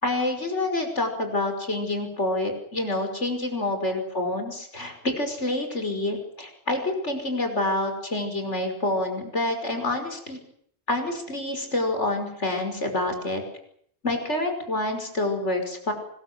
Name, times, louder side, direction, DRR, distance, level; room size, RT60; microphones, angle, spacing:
voice 1, 0.0-10.4 10.9-13.4 14.0-15.9, left 2 dB, 85° left, 5 dB, 5.8 m, -27 dB
25.0 x 21.0 x 8.0 m, 0.67 s
omnidirectional pair, 1.2 m